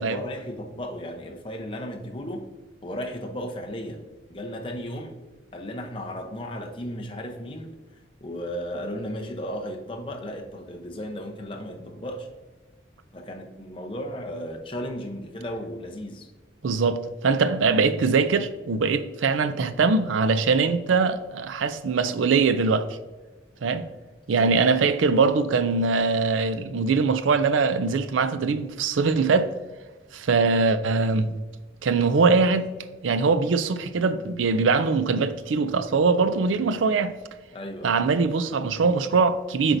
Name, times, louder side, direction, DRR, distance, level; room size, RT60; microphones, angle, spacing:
voice 1, 0.0-2.4 2.8-4.0 4.3-5.1 5.5-7.7 8.2-12.3 13.1-16.3 24.4-24.5 37.5-38.0, equal, 25° left, 0.7 m, -35 dB
voice 2, 16.6-22.9 23.6-23.8 24.3-29.5 30.1-31.3 31.8-32.7 33.0-37.1 37.8-39.8, right 4 dB, 90° right, 0.4 m, -22 dB
7.9 x 4.6 x 2.6 m
head